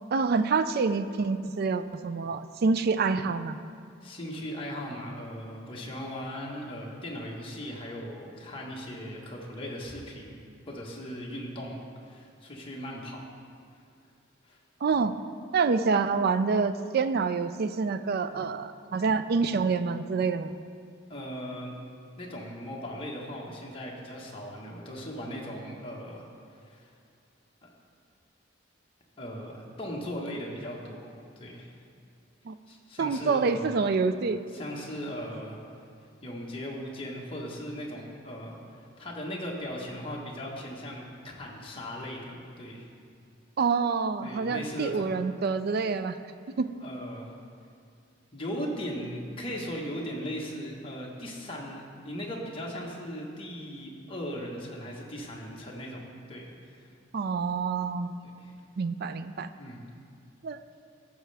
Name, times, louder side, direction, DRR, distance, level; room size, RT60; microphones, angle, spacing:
voice 1, 0.1-3.6 14.8-15.2 15.5-20.5 32.5-32.6 33.0-34.4 43.6-46.2 46.6-46.7 57.1-58.2 58.8-59.5 60.4-60.6, right 4 dB, 50° right, 11 dB, 0.4 m, -27 dB
voice 2, 4.0-10.4 10.7-11.8 12.0-13.2 14.4-14.6 14.9-15.0 21.1-21.7 22.2-26.3 26.6-26.9 29.2-31.1 31.4-31.7 32.7-33.9 34.5-35.6 36.2-42.9 44.2-45.1 46.8-47.3 48.3-56.0 56.3-56.9 58.2-58.5 59.6-59.8, equal, 30° left, -3 dB, 1.3 m, -38 dB
14.5 x 6.6 x 3.4 m, 2.4 s
head